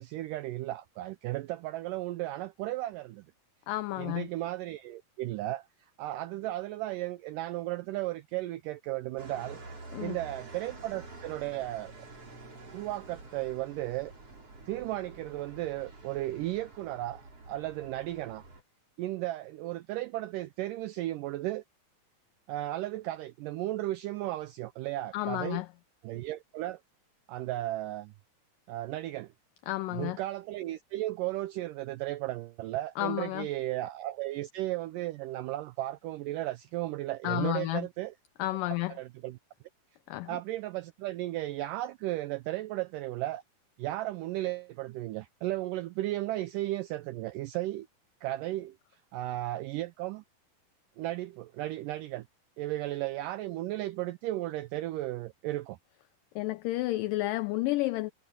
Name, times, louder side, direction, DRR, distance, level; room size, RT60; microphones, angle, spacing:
voice 1, 0.0-3.2 4.0-5.7 6.0-9.6 10.0-12.1 12.7-14.1 14.7-18.5 19.0-21.6 22.5-25.6 26.0-26.8 27.3-28.1 28.7-29.3 29.9-38.1 38.9-39.4 40.3-43.4 43.8-47.9 48.2-48.8 49.1-50.2 51.0-52.3 52.6-55.8, right 16 dB, 80° right, 1.9 m, -35 dB
voice 2, 3.7-4.3 9.9-10.2 25.1-25.7 29.7-30.2 33.0-33.5 37.2-37.9 38.4-38.9 40.1-40.3 56.4-58.1, left 18 dB, 75° left, 2.1 m, -31 dB
sound 1, 9.2-18.6, right 3 dB, 40° right, 6.8 m, -48 dB
omnidirectional pair, 4.3 m